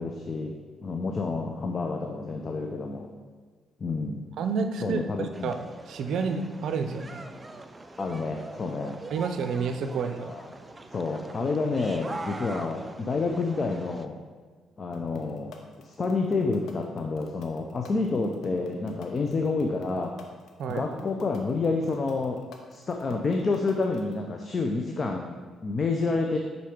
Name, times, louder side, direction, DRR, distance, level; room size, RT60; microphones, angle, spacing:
voice 1, 0.0-3.1 3.8-4.2 4.8-5.5 8.0-9.0 10.2-10.5 10.9-14.2 14.8-20.1 20.7-22.4 22.7-26.4, left 3 dB, 40° left, 2 dB, 0.6 m, -29 dB
voice 2, 4.4-5.6 5.9-7.3 9.1-10.3 20.6-20.9, right 5 dB, 70° right, 7 dB, 0.5 m, -29 dB
sound 1, 5.3-14.1, right 2 dB, 20° right, 0.4 m, -43 dB
sound 2, 14.9-24.1, left 6 dB, 75° left, 0.8 m, -44 dB
5.8 x 4.0 x 4.9 m, 1.5 s
cardioid pair, 90°, 0 cm